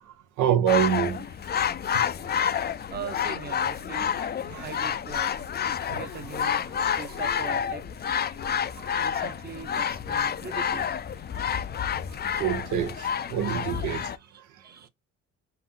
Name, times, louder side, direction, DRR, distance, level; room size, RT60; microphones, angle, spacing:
voice 1, 0.4-1.2 1.5-1.6 1.9-2.0 4.5-4.6 5.9-6.0 8.9-9.0 12.3-14.1, right 9 dB, 85° right, 0.8 m, -26 dB
sound 1, 0.7-14.2, left 8 dB, 35° left, 0.4 m, -29 dB
voice 2, 2.9-4.1 4.4-5.3 5.9-6.6 6.9-8.1 9.0-10.9 13.7-14.9, right 6 dB, 35° right, 0.8 m, -41 dB
5.7 x 2.0 x 3.7 m
cardioid pair, 90°, 30 cm